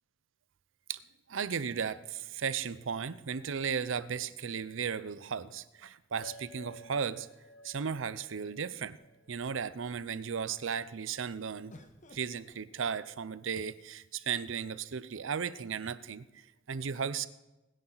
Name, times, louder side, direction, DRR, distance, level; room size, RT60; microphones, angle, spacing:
voice 1, 1.3-7.3 7.6-9.0 9.3-11.7 12.1-17.3, right 6 dB, 80° right, 16 dB, 0.6 m, -35 dB
sound 1, 4.4-4.5 6.5-8.0 8.8-8.9 9.2-9.7 11.7-13.6 14.5-15.2, left 1 dB, 40° left, 1.0 m, -61 dB
sound 2, 6.2-10.9, left 1 dB, 70° left, 1.6 m, -55 dB
21.0 x 9.9 x 4.0 m, 1.0 s
head